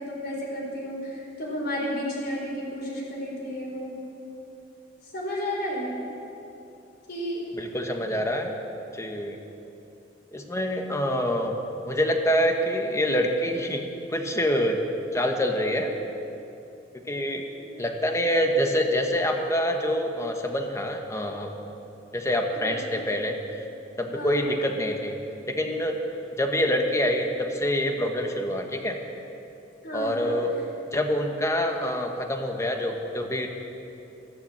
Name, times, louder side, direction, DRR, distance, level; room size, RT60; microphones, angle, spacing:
voice 1, 0.0-3.9 5.1-5.9 7.1-7.5 17.6-17.9 22.6-22.9 24.1-24.6 29.8-30.3, equal, 60° left, -3 dB, 4.2 m, -32 dB
voice 2, 7.5-8.6 8.9-9.4 10.3-13.9 14.1-14.8 15.1-15.9 16.9-17.4 17.8-21.5 22.1-23.6 24.0-25.2 25.5-26.0 26.4-29.0 29.9-30.5 30.9-33.5, equal, 15° left, 3 dB, 1.2 m, -26 dB
14.0 x 11.5 x 7.7 m, 2.9 s
head